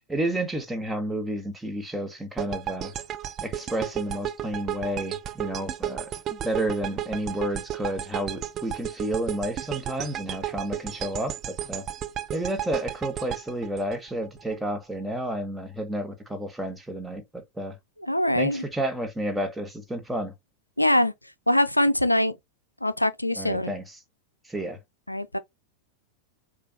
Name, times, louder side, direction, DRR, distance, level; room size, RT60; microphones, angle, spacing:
voice 1, 0.1-2.9 3.4-6.1 6.4-11.8 12.3-17.8 18.3-20.3 23.4-24.0 24.4-24.8, right 1 dB, 5° right, 1.3 m, -31 dB
sound 1, 2.4-14.6, right 11 dB, 30° right, 0.4 m, -33 dB
voice 2, 18.1-18.6 20.8-21.1 21.5-22.3 22.8-23.7 25.1-25.4, left 1 dB, 85° left, 0.3 m, -23 dB
6.7 x 2.4 x 2.9 m
figure-of-eight pair, 90°, 0 cm